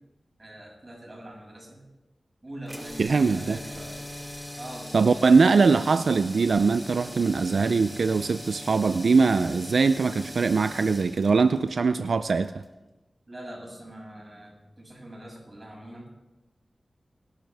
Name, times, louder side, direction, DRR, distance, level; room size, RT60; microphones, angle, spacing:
voice 1, 0.4-1.9 2.4-4.0 4.6-5.4 13.3-16.1, right 1 dB, 35° right, -3 dB, 6.6 m, -43 dB
sound 1, 2.6-12.8, left 1 dB, 10° left, 2.1 m, -41 dB
voice 2, 3.0-3.6 4.9-12.6, right 4 dB, 85° right, 11 dB, 0.4 m, -22 dB
21.5 x 12.0 x 3.5 m, 1.1 s
wide cardioid pair, 75°, 0 cm